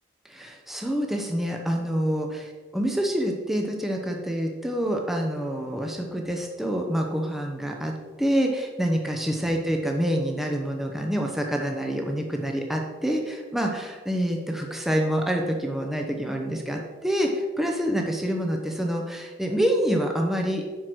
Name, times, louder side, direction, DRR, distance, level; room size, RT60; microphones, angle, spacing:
voice 1, 0.2-20.7, equal, ahead, 1 dB, 0.8 m, -27 dB
10.5 x 4.8 x 6.1 m, 1.4 s
head